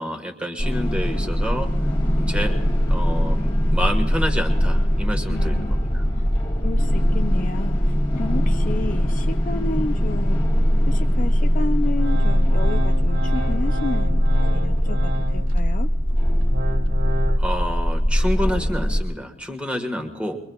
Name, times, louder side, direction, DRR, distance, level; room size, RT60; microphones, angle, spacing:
voice 1, 0.0-1.7 2.2-2.5 2.9-6.0 17.4-20.4, equal, 5° right, 3 dB, 1.5 m, -28 dB
sound 1, 0.6-19.0, equal, 25° left, 1.5 m, -20 dB
voice 2, 5.3-5.8 6.1-6.3 6.6-10.4 10.9-14.2 14.5-15.9, left 2 dB, 40° left, 7 dB, 0.4 m, -31 dB
Organ, 11.8-15.6 16.1-17.4, equal, 75° right, 2.3 m, -32 dB
23.5 x 23.0 x 2.3 m, 1.0 s
head